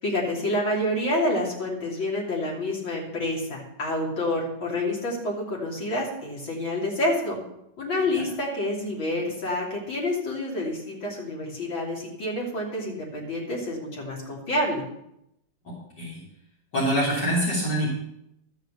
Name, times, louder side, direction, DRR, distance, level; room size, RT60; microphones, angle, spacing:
voice 1, 0.0-7.4 7.8-14.8, left 1 dB, 85° left, -2 dB, 3.8 m, -28 dB
voice 2, 15.6-16.2 16.7-17.9, equal, 60° left, -6 dB, 4.0 m, -25 dB
13.5 x 6.6 x 6.9 m, 0.80 s
omnidirectional pair, 2.1 m